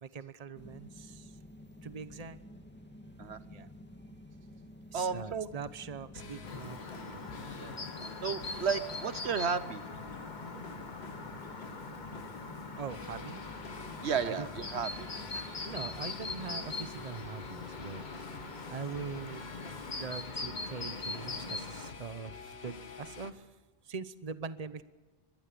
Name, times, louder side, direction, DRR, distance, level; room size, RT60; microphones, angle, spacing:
voice 1, 0.0-1.4 1.8-2.4 3.5-3.7 4.9-6.8 7.1-7.2 12.8-13.4 14.2-15.0 15.3-18.0 18.7-19.5 20.0-23.5 23.8-24.8, right 5 dB, 35° right, 14 dB, 1.1 m, -42 dB
sound 1, 0.5-17.0, left 1 dB, 10° left, 2.4 m, -51 dB
voice 2, 4.9-5.5 7.5-7.8 8.2-9.8 14.0-15.1, right 6 dB, 75° right, 14 dB, 1.2 m, -33 dB
sound 2, 5.9-23.3, left 4 dB, 70° left, 1.8 m, -49 dB
Chirp tweet, 6.4-21.9, left 3 dB, 45° left, 1.6 m, -42 dB
23.5 x 20.5 x 7.0 m, 1.2 s
omnidirectional pair, 1.1 m